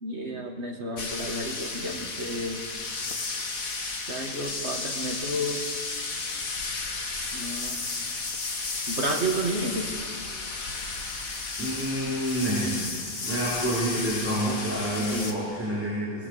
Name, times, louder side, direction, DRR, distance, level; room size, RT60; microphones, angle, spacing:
voice 1, 0.0-2.6 4.1-5.6 7.3-7.8 8.9-9.9 15.1-15.3, right 1 dB, 50° right, 2 dB, 2.5 m, -31 dB
sound 1, 1.0-15.3, left 3 dB, 80° left, 2.3 m, -33 dB
voice 2, 11.6-12.8 13.2-16.3, right 1 dB, 10° right, -9 dB, 4.9 m, -28 dB
29.0 x 19.5 x 6.8 m, 2.2 s
omnidirectional pair, 1.4 m